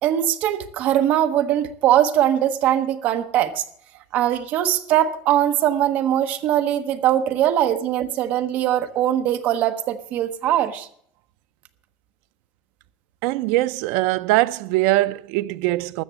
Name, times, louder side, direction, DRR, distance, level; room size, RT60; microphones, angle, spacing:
voice 1, 0.0-3.6 4.1-10.9, right 11 dB, 40° right, 0.9 m, -21 dB
voice 2, 13.2-16.0, right 18 dB, 65° right, 0.4 m, -21 dB
13.5 x 7.1 x 8.1 m
cardioid pair, 175°, 4 cm